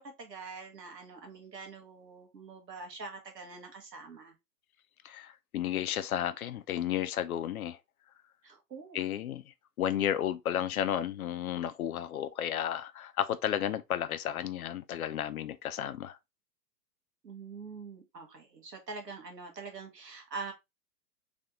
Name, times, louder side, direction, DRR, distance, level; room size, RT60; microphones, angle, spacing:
voice 1, 0.0-4.3 8.4-9.0 17.2-20.5, right 4 dB, 80° right, 1.5 m, -44 dB
voice 2, 5.0-7.8 8.9-9.4 9.8-16.2, left 10 dB, 65° left, 0.5 m, -33 dB
3.4 x 2.7 x 3.6 m
figure-of-eight pair, 115°, 48 cm